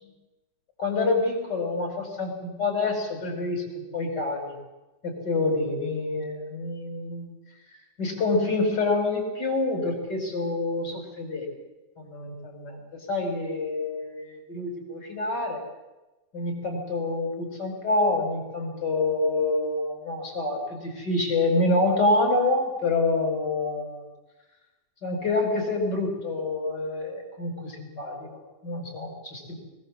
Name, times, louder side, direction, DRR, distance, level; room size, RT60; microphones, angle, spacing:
voice 1, 0.8-4.5 5.0-7.3 8.0-11.5 12.0-15.6 16.3-24.1 25.0-29.5, left 2 dB, 70° left, 2 dB, 5.9 m, -27 dB
22.0 x 21.5 x 7.6 m, 1.1 s
omnidirectional pair, 1.9 m